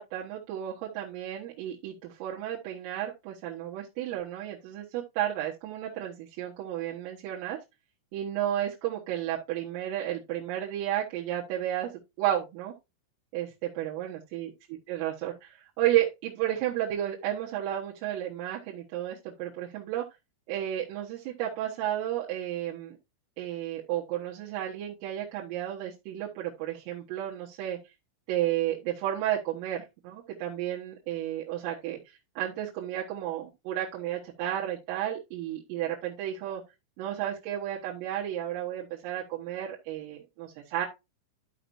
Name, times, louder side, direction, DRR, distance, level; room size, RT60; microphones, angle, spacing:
voice 1, 0.0-7.6 8.1-11.9 12.2-12.7 13.3-20.1 20.5-23.0 23.4-27.8 28.3-36.6 37.0-40.9, right 12 dB, 85° right, -5 dB, 4.1 m, -32 dB
13.0 x 5.8 x 2.7 m, 0.24 s
omnidirectional pair, 5.8 m